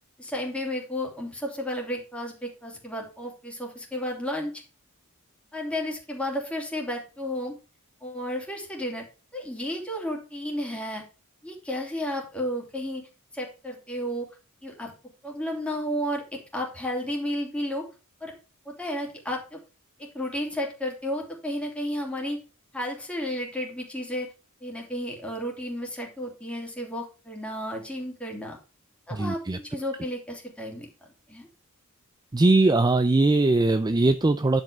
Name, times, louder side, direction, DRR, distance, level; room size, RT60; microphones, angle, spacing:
voice 1, 0.2-4.5 5.5-7.6 8.0-9.1 9.3-11.0 11.4-13.1 13.3-14.3 14.6-14.9 15.2-17.9 18.2-18.3 18.6-19.6 20.0-22.4 22.7-24.3 24.6-28.6 29.1-30.9 31.3-31.5, equal, 5° left, -1 dB, 3.0 m, -32 dB
voice 2, 29.1-29.6 32.3-34.6, right 2 dB, 20° right, 11 dB, 0.4 m, -21 dB
11.0 x 5.4 x 5.0 m, 0.32 s
head